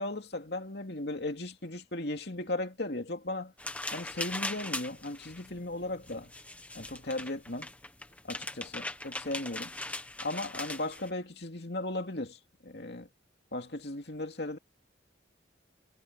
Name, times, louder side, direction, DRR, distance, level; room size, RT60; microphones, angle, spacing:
voice 1, 0.0-3.5 3.9-6.3 6.7-7.7 8.2-9.7 10.2-13.1 13.5-14.6, left 2 dB, 60° left, 2.6 m, -36 dB
sound 1, 3.6-11.1, left 2 dB, 10° left, 1.4 m, -40 dB
head